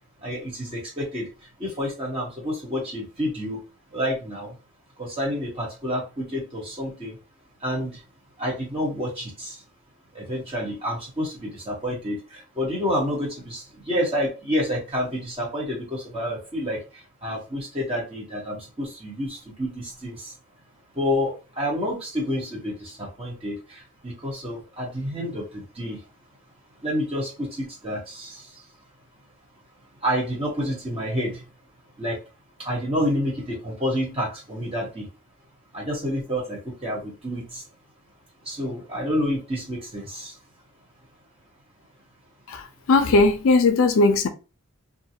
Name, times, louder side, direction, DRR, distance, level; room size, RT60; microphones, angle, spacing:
voice 1, 0.2-1.3 1.6-3.6 3.9-4.5 5.0-7.1 7.6-8.0 8.4-9.5 10.1-16.8 17.2-20.3 20.9-26.0 26.8-28.4 30.0-31.4 32.0-32.2 32.6-35.1 35.7-37.6 38.5-40.3, equal, 25° right, 1.1 m, -29 dB
voice 2, 42.5-44.3, left 3 dB, 65° left, 0.4 m, -19 dB
2.5 x 2.3 x 2.8 m
head